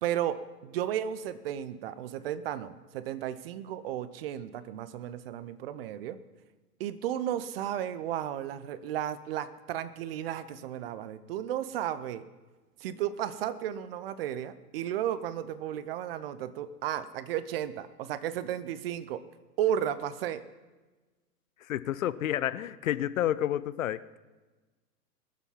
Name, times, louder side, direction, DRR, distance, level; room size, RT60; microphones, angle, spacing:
voice 1, 0.0-6.2 6.8-12.2 12.8-19.2 19.6-20.4, right 10 dB, 35° right, 14 dB, 0.7 m, -34 dB
voice 2, 21.7-24.2, left 11 dB, 55° left, 17 dB, 0.6 m, -30 dB
22.0 x 7.5 x 5.7 m, 1.2 s
hypercardioid pair, 115°, 49 cm